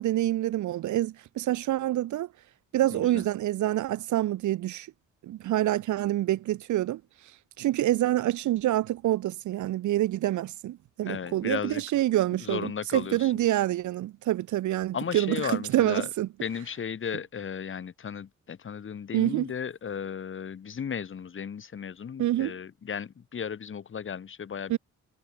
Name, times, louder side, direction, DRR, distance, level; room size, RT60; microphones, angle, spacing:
voice 1, 0.0-2.3 2.7-4.9 5.2-7.0 7.6-16.3 19.1-19.5 22.2-22.5 24.7-24.8, right 14 dB, 80° right, 0.7 m, -27 dB
voice 2, 2.9-3.2 11.0-11.8 12.4-13.3 14.9-16.1 16.4-24.8, left 7 dB, 45° left, 3.8 m, -35 dB
wide cardioid pair, 155°, 29 cm